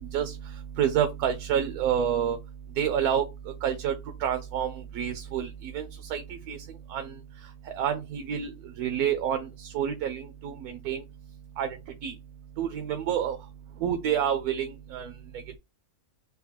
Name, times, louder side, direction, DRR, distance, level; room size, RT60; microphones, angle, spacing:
voice 1, 0.8-2.4 2.8-3.2 3.6-3.9 4.2-6.2 6.5-6.6 6.9-7.1 7.8-8.5 8.8-11.0 11.6-11.7 12.0-12.1 12.6-13.4 13.8-15.1, right 9 dB, 85° right, 1.1 m, -28 dB
3.7 x 2.2 x 4.2 m
omnidirectional pair, 1.5 m